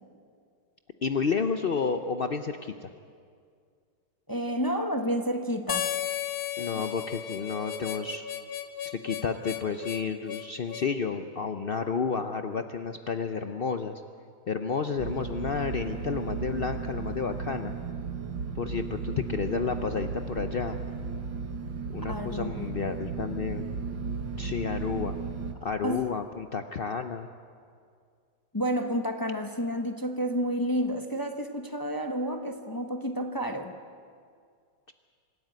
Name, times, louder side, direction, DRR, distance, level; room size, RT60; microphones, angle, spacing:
voice 1, 1.0-2.9 6.6-8.3 8.8-14.0 14.5-17.7 18.5-20.8 21.9-23.7 24.4-25.2 25.6-27.3, left 5 dB, 80° left, 7 dB, 0.5 m, -31 dB
voice 2, 4.3-5.9 22.1-22.7 25.8-26.1 28.5-33.7, equal, 20° left, 5 dB, 0.6 m, -30 dB
Harmonica, 5.7-10.9, left 11 dB, 60° left, 1.3 m, -34 dB
sound 1, 15.0-25.5, right 5 dB, 80° right, 2.2 m, -35 dB
25.0 x 13.5 x 9.4 m, 2.2 s
omnidirectional pair, 2.0 m